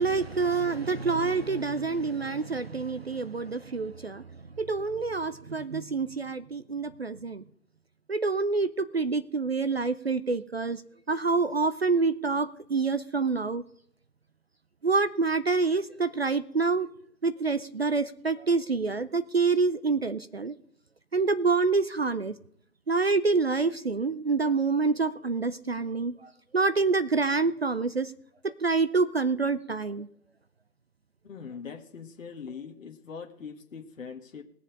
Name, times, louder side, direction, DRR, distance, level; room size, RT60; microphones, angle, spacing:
voice 1, 0.0-4.2 4.6-7.4 8.1-10.8 11.1-13.6 14.8-16.9 17.2-20.5 21.1-22.4 22.9-28.1 28.4-30.1, right 4 dB, 40° right, 13 dB, 0.5 m, -27 dB
voice 2, 31.2-34.4, left 6 dB, 55° left, 4 dB, 1.4 m, -42 dB
19.5 x 7.2 x 5.2 m, 0.68 s
figure-of-eight pair, 150°, 48 cm